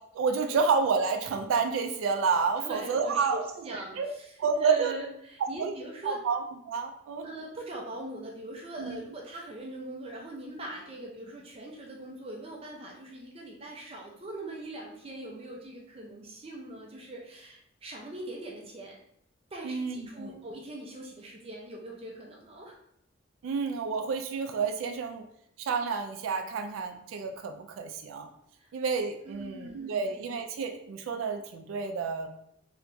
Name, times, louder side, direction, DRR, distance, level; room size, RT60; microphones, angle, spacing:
voice 1, 0.1-3.4 4.0-4.1 4.4-4.9 5.6-5.7 6.1-6.4 6.7-7.3 8.8-9.0 19.6-20.3 23.4-25.2 25.6-28.3 28.7-32.3, right 5 dB, 90° right, 5 dB, 0.3 m, -29 dB
voice 2, 2.6-6.2 7.2-19.0 19.5-22.8 28.6-28.7 29.2-30.1, right 1 dB, 30° right, -1 dB, 0.4 m, -41 dB
3.4 x 2.8 x 2.6 m, 0.73 s
head